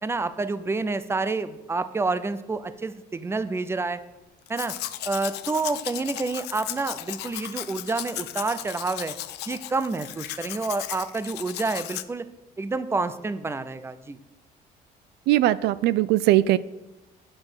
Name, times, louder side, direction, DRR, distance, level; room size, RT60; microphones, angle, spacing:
voice 1, 0.0-4.0 4.5-4.8 5.1-9.2 9.5-12.3 12.6-14.2, right 3 dB, 15° right, 13 dB, 0.6 m, -28 dB
Domestic sounds home sounds, 4.5-12.0, left 14 dB, 80° left, 0.6 m, -36 dB
voice 2, 15.3-16.6, right 15 dB, 80° right, 17 dB, 0.4 m, -20 dB
8.7 x 6.1 x 6.3 m, 1.0 s
cardioid pair, 110°, 17 cm